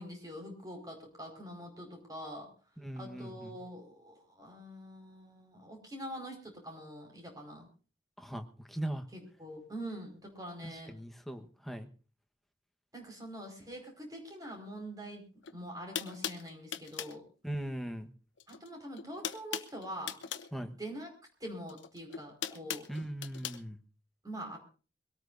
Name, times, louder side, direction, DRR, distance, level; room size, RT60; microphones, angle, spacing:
voice 1, 0.0-2.5 3.0-7.7 9.1-10.9 12.9-15.2 15.5-17.2 18.5-20.1 20.6-21.1 21.4-22.9 24.2-24.6, equal, 20° right, 2 dB, 5.0 m, -44 dB
voice 2, 2.8-3.6 8.2-9.0 10.6-11.9 17.4-18.1 20.5-20.7 22.9-23.8, right 1 dB, ahead, 5 dB, 1.2 m, -39 dB
sound 1, 15.4-15.5 15.9-17.2 18.4-18.7 18.9-20.5 21.7-23.6, left 9 dB, 85° left, 1.0 m, -39 dB
23.0 x 18.0 x 2.6 m, 0.36 s
head